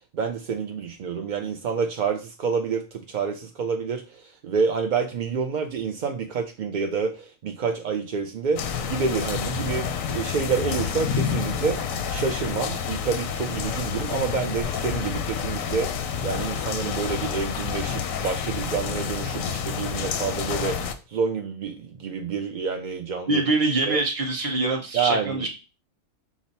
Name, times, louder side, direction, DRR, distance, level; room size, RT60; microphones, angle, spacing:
voice 1, 0.1-11.8 12.1-16.0 16.2-23.4 23.9-24.0 24.9-25.4, right 5 dB, 65° right, 4 dB, 0.4 m, -28 dB
sound 1, 8.6-20.9, left 7 dB, 90° left, 1.0 m, -29 dB
voice 2, 23.3-25.5, right 2 dB, 30° right, 1 dB, 0.8 m, -24 dB
6.0 x 2.0 x 4.1 m, 0.31 s
omnidirectional pair, 1.3 m